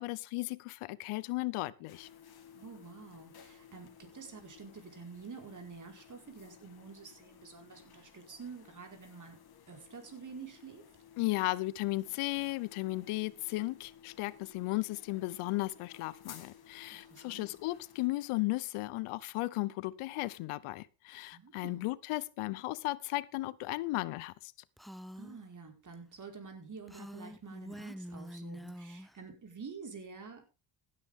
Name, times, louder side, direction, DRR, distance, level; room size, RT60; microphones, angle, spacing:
voice 1, 0.0-2.1 11.2-24.5, left 20 dB, 85° left, 0.9 m, -35 dB
sound 1, 1.9-18.1, left 8 dB, 50° left, 2.5 m, -57 dB
voice 2, 2.5-9.4 9.7-10.8 16.9-17.5 21.3-21.8 25.2-30.4, right 5 dB, 35° right, 4.9 m, -48 dB
Female speech woman speaking, 24.8-25.4 26.9-29.2, equal, ahead, 0.5 m, -46 dB
16.0 x 9.5 x 3.7 m
cardioid pair, 90°, 49 cm